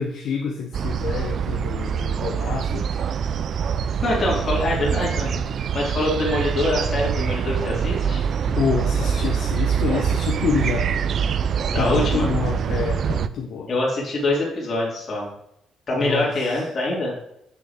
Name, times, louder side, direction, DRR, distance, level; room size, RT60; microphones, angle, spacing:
voice 1, 0.0-3.0 8.5-10.9 11.8-13.7 16.0-16.6, left 6 dB, 65° left, 3 dB, 0.8 m, -27 dB
sound 1, 0.7-13.3, right 7 dB, 50° right, 0.3 m, -24 dB
voice 2, 4.0-5.4 5.7-8.2 11.7-12.3 13.7-15.3 15.9-17.1, left 1 dB, 40° left, -4 dB, 2.9 m, -24 dB
6.7 x 6.3 x 3.6 m, 0.77 s
cardioid pair, 120°, 0 cm